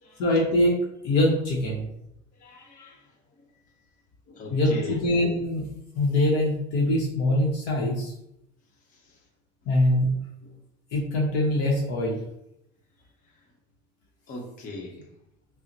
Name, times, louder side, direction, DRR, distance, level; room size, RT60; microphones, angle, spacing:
voice 1, 0.2-1.9 4.5-5.7 5.9-8.1 9.7-10.1 10.9-12.2, left 1 dB, 65° left, -2 dB, 0.9 m, -23 dB
voice 2, 2.4-3.0 4.3-5.0 14.3-14.9, left 2 dB, 45° left, -1 dB, 1.1 m, -38 dB
5.4 x 2.1 x 2.9 m, 0.81 s
supercardioid pair, 105°, 18 cm